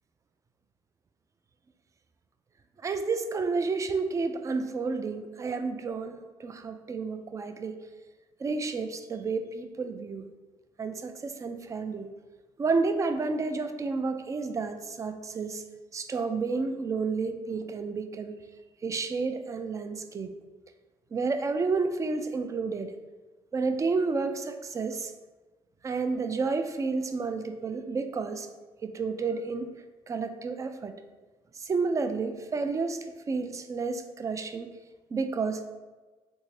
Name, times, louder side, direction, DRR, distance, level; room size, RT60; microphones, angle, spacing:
voice 1, 2.8-7.8 8.4-10.3 10.8-12.1 12.6-15.6 15.9-18.4 18.8-20.3 21.1-22.9 23.5-25.1 25.8-28.5 28.8-29.7 30.1-30.9 31.5-34.7 35.1-35.7, right 4 dB, 30° right, 8 dB, 0.3 m, -31 dB
3.4 x 2.6 x 3.1 m, 1.3 s
supercardioid pair, 75°, 11 cm